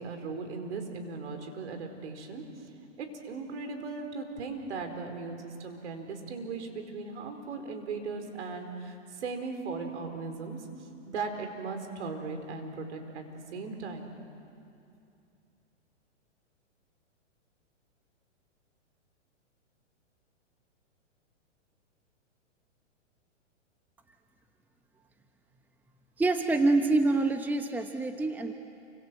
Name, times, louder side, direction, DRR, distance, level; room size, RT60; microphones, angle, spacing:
voice 1, 0.0-2.4 3.0-10.6 11.1-14.1, right 4 dB, 65° right, 5 dB, 4.9 m, -38 dB
voice 2, 26.2-28.5, right 2 dB, 5° right, 6 dB, 1.0 m, -26 dB
29.0 x 26.5 x 7.8 m, 2.6 s
hypercardioid pair, 130°, 37 cm